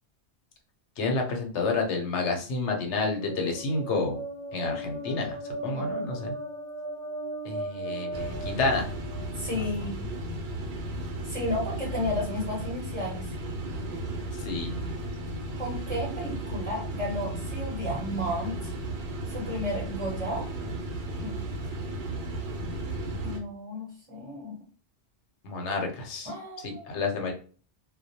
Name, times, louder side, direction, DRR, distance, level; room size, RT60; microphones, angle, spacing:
voice 1, 1.0-4.2 4.5-5.4 5.6-6.4 7.4-8.9 9.5-9.8 14.4-14.9 25.4-26.3 26.6-27.3, left 3 dB, 90° left, 3 dB, 1.0 m, -30 dB
sound 1, 2.6-9.5, right 1 dB, 45° right, 0.5 m, -37 dB
sound 2, 8.1-23.4, right 1 dB, 70° right, 0.8 m, -34 dB
voice 2, 9.3-9.9 11.2-13.3 15.6-18.7 19.3-20.5 21.2-21.3 23.2-24.5 26.2-27.0, left 1 dB, 30° right, -6 dB, 0.8 m, -33 dB
2.3 x 2.1 x 2.7 m, 0.40 s
omnidirectional pair, 1.1 m